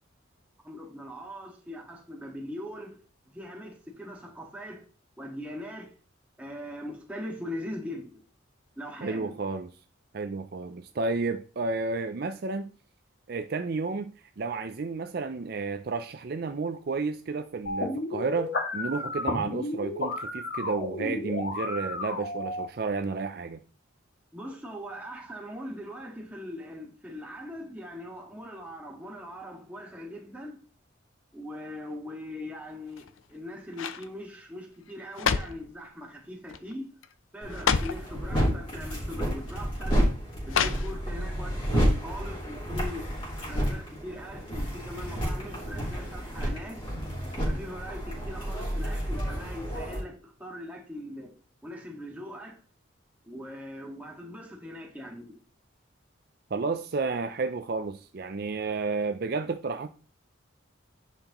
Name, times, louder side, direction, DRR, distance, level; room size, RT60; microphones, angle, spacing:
voice 1, 0.6-3.0 3.3-4.8 5.2-5.9 6.4-8.2 8.8-9.3 24.3-30.6 31.3-36.9 37.3-40.0 40.5-43.0 43.4-46.8 47.5-51.3 51.6-52.6 53.2-55.4, left 1 dB, 5° right, 1.7 m, -41 dB
voice 2, 9.0-9.7 10.1-12.7 13.3-23.6 56.5-59.9, right 4 dB, 50° right, 0.5 m, -31 dB
sound 1, 17.7-22.7, left 2 dB, 55° left, 1.7 m, -32 dB
sound 2, 32.9-33.3 33.7-34.1 34.9-35.7 36.5-36.7 37.0-37.1 37.5-38.1 39.0-39.1 40.5-41.2 41.6-41.7, left 6 dB, 85° left, 0.6 m, -29 dB
sound 3, 37.4-50.0, equal, 25° left, 3.5 m, -30 dB
10.0 x 5.7 x 3.0 m
head